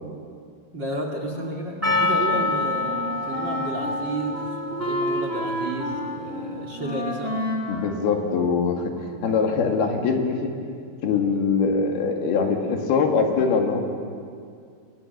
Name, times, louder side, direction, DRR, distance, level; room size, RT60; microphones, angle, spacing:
voice 1, 0.7-7.3, right 2 dB, 35° right, 2 dB, 2.3 m, -32 dB
Wind instrument woodwind instrument, 1.3-8.8, left 1 dB, 15° left, 3.6 m, -31 dB
Percussion, 1.8-6.8, left 2 dB, 5° right, 1.8 m, -28 dB
voice 2, 7.7-10.5 11.0-13.8, left 5 dB, 80° left, 3 dB, 4.1 m, -23 dB
28.5 x 23.0 x 6.8 m, 2.3 s
omnidirectional pair, 4.4 m